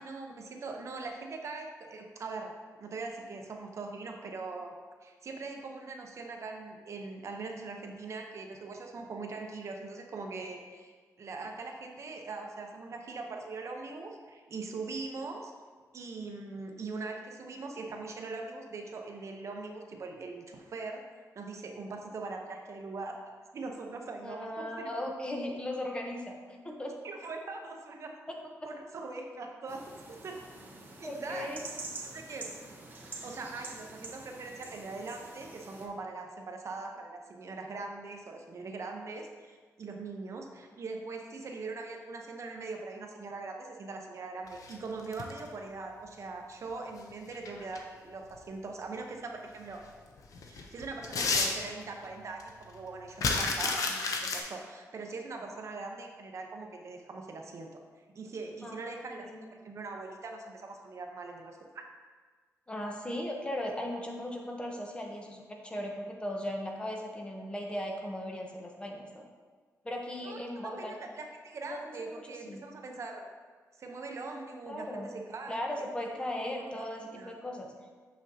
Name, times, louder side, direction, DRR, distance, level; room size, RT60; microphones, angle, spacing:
voice 1, 0.0-2.5 2.8-4.8 5.0-10.9 11.2-15.5 15.9-21.0 21.3-23.2 23.5-24.9 27.0-28.1 28.7-29.9 30.2-30.4 31.0-31.6 32.0-32.4 33.2-49.8 50.4-57.7 58.1-59.2 59.6-61.8 70.2-73.2 73.8-75.6 76.7-77.4, right 3 dB, 55° right, 2 dB, 0.8 m, -41 dB
voice 2, 24.2-26.9 31.0-31.6 58.6-59.4 62.7-69.2 69.8-71.0 71.7-71.8 72.1-72.6 74.7-75.1 75.5-77.7, left 1 dB, 15° left, 1 dB, 0.9 m, -37 dB
sound 1, 29.7-35.9, right 3 dB, 30° right, 1.0 m, -46 dB
sound 2, 44.5-45.5 47.1-47.8 48.3-48.4 49.7-49.8 50.2-52.0 52.4-52.5 52.7-54.4, left 4 dB, 70° left, 0.7 m, -31 dB
6.2 x 6.2 x 2.8 m, 1.5 s
cardioid pair, 100°, 6 cm